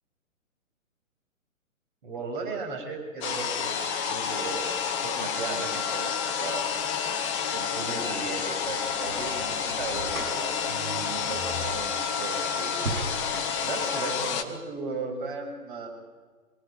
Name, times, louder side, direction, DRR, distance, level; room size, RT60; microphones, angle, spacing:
voice 1, 2.0-6.7 7.5-12.8 13.6-15.9, right 4 dB, 40° right, 2 dB, 7.2 m, -36 dB
sound 1, 3.2-14.4, left 7 dB, 20° left, 1.4 m, -29 dB
sound 2, 7.3-13.9, right 2 dB, 70° right, 6.7 m, -39 dB
25.0 x 17.5 x 9.3 m, 1.4 s
figure-of-eight pair, 130°, 42 cm